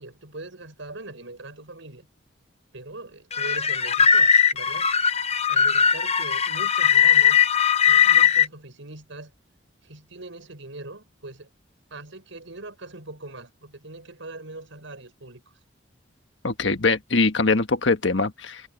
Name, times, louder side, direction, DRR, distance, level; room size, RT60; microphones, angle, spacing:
voice 1, 0.0-2.1 2.7-4.9 5.5-7.4 7.9-9.3 9.8-11.5 11.9-15.4, right 2 dB, 90° right, 5.5 m, -41 dB
sound 1, 3.3-8.5, left 8 dB, 35° left, 1.0 m, -19 dB
voice 2, 16.4-18.6, left 3 dB, 70° left, 1.5 m, -22 dB
head